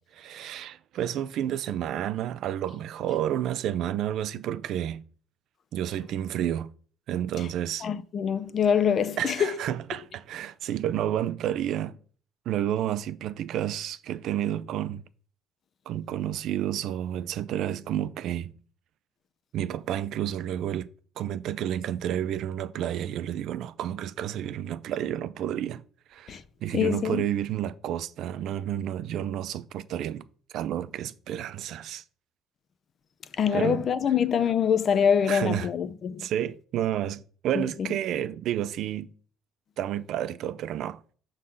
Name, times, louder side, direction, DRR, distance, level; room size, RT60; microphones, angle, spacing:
voice 1, 0.1-5.0 5.7-6.7 7.1-7.9 9.2-12.0 12.5-15.1 15.9-18.5 19.5-20.9 21.2-25.8 26.1-30.3 30.5-32.0 33.5-33.9 35.2-35.7 36.2-39.1 39.8-41.0, right 11 dB, 65° right, 0.4 m, -30 dB
voice 2, 7.8-9.5 26.3-26.4 26.7-27.2 33.4-36.2 37.5-37.9, left 7 dB, 45° left, 0.6 m, -24 dB
6.4 x 3.8 x 5.4 m
cardioid pair, 105°, 0 cm